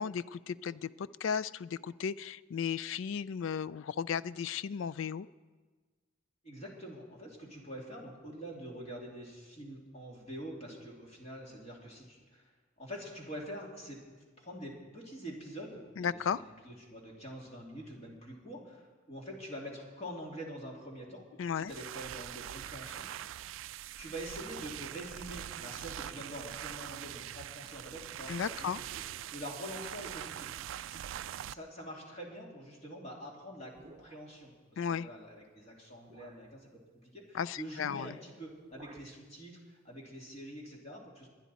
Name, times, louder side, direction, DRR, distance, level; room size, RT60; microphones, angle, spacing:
voice 1, 0.0-5.3 16.0-16.4 21.4-21.7 28.3-28.8 34.8-35.1 37.3-38.1, left 7 dB, 65° left, 18 dB, 0.4 m, -35 dB
voice 2, 6.4-12.5 12.8-14.0 14.4-21.2 21.5-23.3 24.0-29.0 29.3-30.5 30.9-31.1 31.5-41.3, equal, 30° left, -2 dB, 2.7 m, -45 dB
sound 1, 21.6-31.5, right 11 dB, 70° right, 0.3 m, -43 dB
sound 2, 33.7-34.5 35.4-35.5 36.1-36.5 37.9-38.2 38.4-39.2, right 2 dB, 25° right, 0.9 m, -58 dB
21.5 x 10.0 x 4.2 m, 1.4 s
head